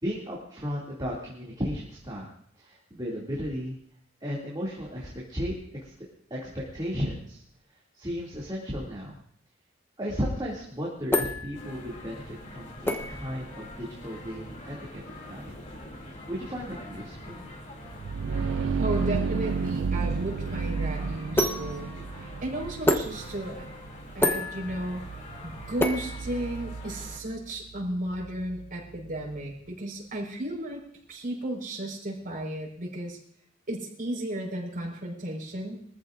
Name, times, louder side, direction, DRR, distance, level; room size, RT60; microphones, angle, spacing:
voice 1, 0.0-2.2 2.6-3.7 4.2-5.6 5.8-5.9 6.3-7.4 7.9-9.2 10.0-15.5 16.3-17.4, equal, 20° right, -5 dB, 2.5 m, -34 dB
sound 1, 10.5-26.9, left 1 dB, 10° left, 1.1 m, -32 dB
sound 2, 11.5-27.2, left 1 dB, 40° left, 2.8 m, -44 dB
sound 3, 17.8-29.4, right 5 dB, 85° right, 0.4 m, -33 dB
voice 2, 18.8-21.9 22.2-23.7 24.1-25.0 25.4-30.8 31.1-33.2 33.7-35.8, right 1 dB, 45° right, 0 dB, 4.8 m, -34 dB
23.5 x 14.0 x 2.6 m, 0.64 s
head